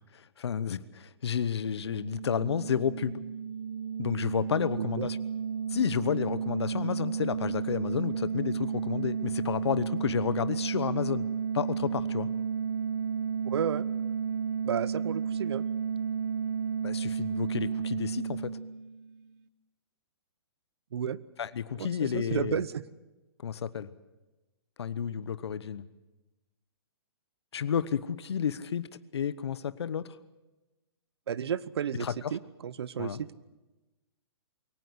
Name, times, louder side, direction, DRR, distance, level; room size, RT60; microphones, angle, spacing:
voice 1, 0.1-3.2 4.0-5.2 5.7-11.3 11.5-12.3 16.8-18.5 21.4-22.6 23.4-23.9 24.8-25.8 27.5-28.9 29.1-30.2 32.0-32.1 33.0-33.2, left 8 dB, 75° left, 15 dB, 1.0 m, -31 dB
sound 1, 1.7-19.2, right 7 dB, 40° right, 1.1 m, -32 dB
voice 2, 4.8-5.1 13.4-13.9 14.6-15.6 20.9-21.2 21.7-22.8 31.3-33.3, right 8 dB, 75° right, 18 dB, 1.0 m, -32 dB
22.5 x 18.0 x 8.1 m, 1.1 s
hypercardioid pair, 145°, 14 cm